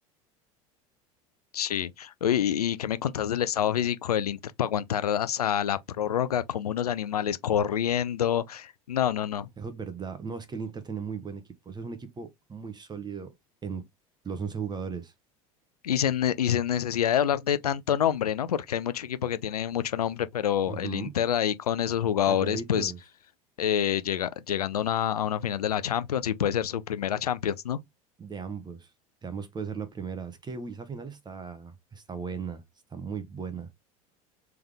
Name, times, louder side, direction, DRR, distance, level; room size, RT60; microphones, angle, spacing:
voice 1, 1.5-9.5 15.8-22.9 23.6-27.8, left 9 dB, 85° left, 0.4 m, -27 dB
voice 2, 9.6-13.3 13.6-13.8 14.2-15.1 20.7-21.1 22.3-23.0 28.2-28.9 29.2-32.6 32.9-33.7, right 5 dB, 20° right, 0.9 m, -37 dB
3.5 x 3.4 x 3.4 m
hypercardioid pair, 75°, 19 cm